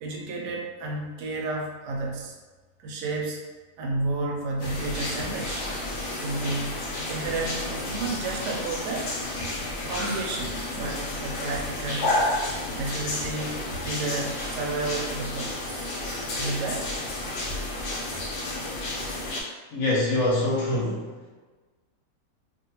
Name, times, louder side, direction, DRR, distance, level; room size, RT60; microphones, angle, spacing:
voice 1, 0.0-2.4 2.8-3.4 3.8-5.7 6.2-9.1 9.9-12.2 12.7-13.6 13.8-16.0 16.4-16.9, right 3 dB, 85° right, 0 dB, 1.2 m, -31 dB
sound 1, 4.6-19.4, left 1 dB, 85° left, 1.2 m, -31 dB
voice 2, 19.7-21.1, left 2 dB, 65° left, -5 dB, 1.0 m, -24 dB
2.7 x 2.5 x 2.8 m, 1.3 s
omnidirectional pair, 1.8 m